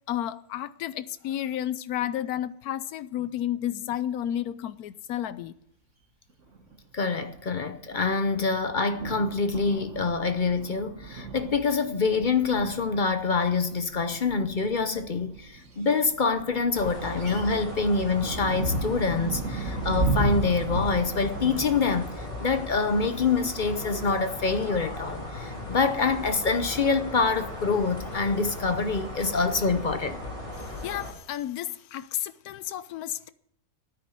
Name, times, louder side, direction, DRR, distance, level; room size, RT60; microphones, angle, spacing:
voice 1, 0.1-5.5 30.6-33.3, left 11 dB, 90° left, 1.2 m, -32 dB
sound 1, 6.6-6.8 7.3-7.4 7.8-21.6, right 2 dB, 55° right, 1.9 m, -34 dB
voice 2, 6.9-30.2, left 4 dB, 45° left, 0.7 m, -26 dB
sound 2, 16.7-31.1, left 1 dB, 20° left, 3.6 m, -37 dB
9.5 x 9.5 x 9.1 m
omnidirectional pair, 1.5 m